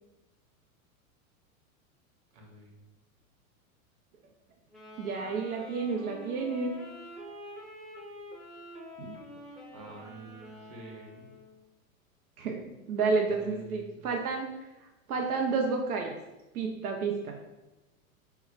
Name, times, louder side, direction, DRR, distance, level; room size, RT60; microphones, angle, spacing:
voice 1, 2.3-2.8 9.7-11.3 13.4-14.1, right 2 dB, 45° right, 1 dB, 1.0 m, -48 dB
Wind instrument woodwind instrument, 4.7-11.6, left 1 dB, ahead, 0.5 m, -47 dB
voice 2, 5.0-6.8 9.0-9.1 12.4-14.7 15.1-16.1 16.5-17.4, right 4 dB, 90° right, 2 dB, 0.5 m, -30 dB
5.4 x 2.1 x 2.4 m, 1.0 s
hypercardioid pair, 100°, 43 cm